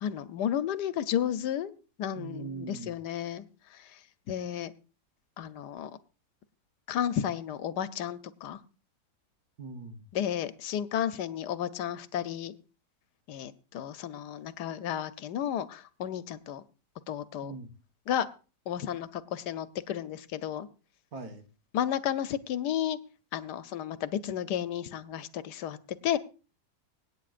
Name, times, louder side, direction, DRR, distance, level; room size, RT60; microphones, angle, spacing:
voice 1, 0.0-1.7 2.0-3.4 4.3-4.7 5.4-5.9 6.9-8.6 10.1-12.5 13.3-16.6 17.1-17.5 18.1-18.3 18.7-20.7 21.7-23.0 23.3-25.8 26.0-26.2, left 10 dB, 75° left, 14 dB, 1.3 m, -32 dB
voice 2, 2.2-3.0 9.6-10.1 17.4-17.7 21.1-21.4, right 4 dB, 60° right, 6 dB, 1.8 m, -41 dB
24.5 x 9.1 x 2.5 m, 0.34 s
omnidirectional pair, 1.8 m